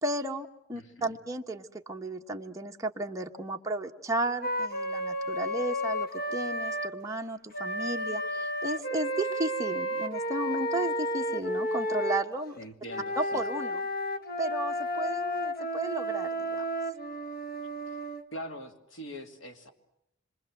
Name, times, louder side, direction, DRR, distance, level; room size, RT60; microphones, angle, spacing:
voice 1, 0.0-12.6 13.2-13.8 14.4-16.6, right 2 dB, 15° right, 2 dB, 1.3 m, -34 dB
voice 2, 0.7-1.2 12.6-13.4 17.9-18.0 18.3-19.7, equal, 70° left, 5 dB, 2.7 m, -43 dB
Wind instrument woodwind instrument, 4.4-6.9 7.5-12.2 12.9-18.2, equal, 50° left, 1.6 m, -32 dB
27.0 x 24.0 x 7.9 m, 0.81 s
head